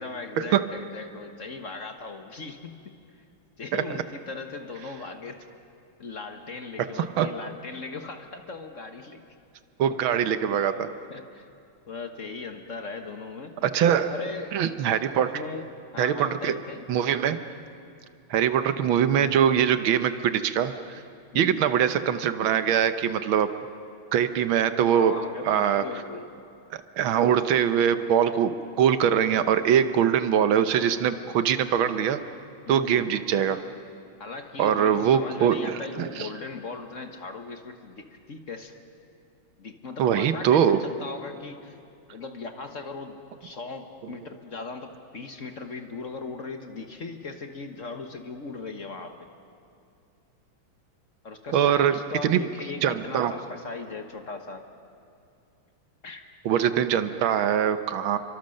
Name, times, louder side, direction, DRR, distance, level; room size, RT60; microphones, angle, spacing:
voice 1, 0.0-2.9 3.6-5.4 6.0-9.2 10.1-10.2 11.1-11.4 11.9-13.5 14.1-14.6 15.1-15.7 15.9-16.9 21.3-21.7 24.9-26.3 32.7-33.2 34.2-38.7 39.6-41.8 42.1-49.3 51.2-54.6 56.0-56.2, left 4 dB, 45° left, 6 dB, 1.3 m, -38 dB
voice 2, 7.0-7.3 9.8-10.9 13.6-14.1 14.5-15.4 16.0-16.5 16.9-17.4 18.3-20.8 21.4-23.5 24.1-25.1 25.5-25.8 27.0-32.2 32.7-33.6 34.6-36.1 40.0-40.8 51.5-52.4 52.8-53.3 56.5-58.2, right 9 dB, 75° right, 11 dB, 1.7 m, -23 dB
29.5 x 24.0 x 6.5 m, 2.5 s
omnidirectional pair, 2.2 m